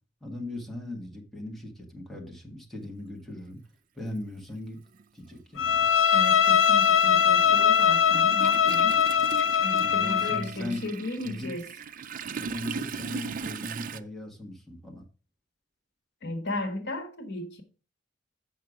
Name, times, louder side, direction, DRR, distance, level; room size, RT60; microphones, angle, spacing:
voice 1, 0.2-3.6 3.9-4.8 5.1-5.9 9.8-10.8 11.2-11.5 12.4-15.0, left 1 dB, ahead, 1.5 m, -38 dB
Toilet flush, 3.5-3.6 4.9-5.0 5.4-14.0, right 6 dB, 45° right, 0.4 m, -39 dB
Bowed string instrument, 5.6-10.5, left 8 dB, 85° left, 0.6 m, -21 dB
voice 2, 6.1-9.0 9.6-11.6 16.2-17.6, left 2 dB, 60° left, 1.4 m, -35 dB
7.4 x 5.8 x 4.9 m
head